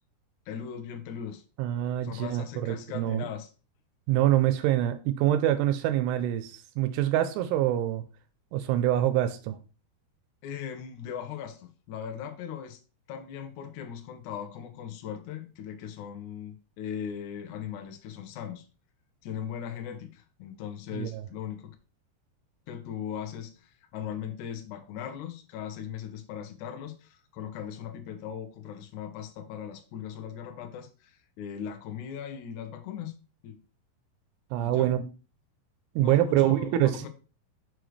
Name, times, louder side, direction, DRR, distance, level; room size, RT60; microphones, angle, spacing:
voice 1, 0.5-1.4 2.0-3.5 10.4-12.8 13.1-18.6 19.2-21.7 22.7-31.1 31.4-33.1 33.4-33.6 34.6-34.9 36.0-37.1, left 8 dB, 85° left, 1.7 m, -39 dB
voice 2, 1.6-3.3 4.1-8.0 8.5-9.6 20.9-21.1 34.5-35.0 36.0-37.0, right 12 dB, 85° right, 2.7 m, -25 dB
6.4 x 6.3 x 3.2 m
omnidirectional pair, 4.7 m